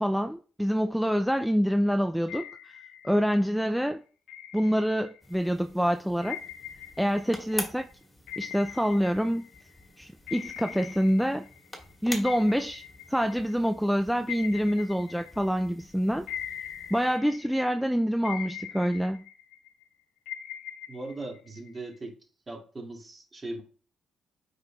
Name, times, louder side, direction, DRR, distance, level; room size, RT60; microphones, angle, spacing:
voice 1, 0.0-2.8 3.0-4.0 4.5-6.4 7.0-7.9 8.4-9.5 10.0-11.5 12.0-12.8 13.1-16.3 16.9-19.2, equal, ahead, 0.3 m, -26 dB
sound 1, 2.3-3.6 4.3-5.4 6.2-9.8 10.3-11.9 12.2-15.8 16.3-17.8 18.2-19.8 20.3-22.0, left 10 dB, 85° left, 0.9 m, -42 dB
sound 2, 5.2-17.2, left 1 dB, 15° left, 1.8 m, -45 dB
voice 2, 20.9-22.2 22.5-23.6, right 2 dB, 30° right, 2.2 m, -39 dB
7.8 x 5.5 x 2.3 m
cardioid pair, 90°, 0 cm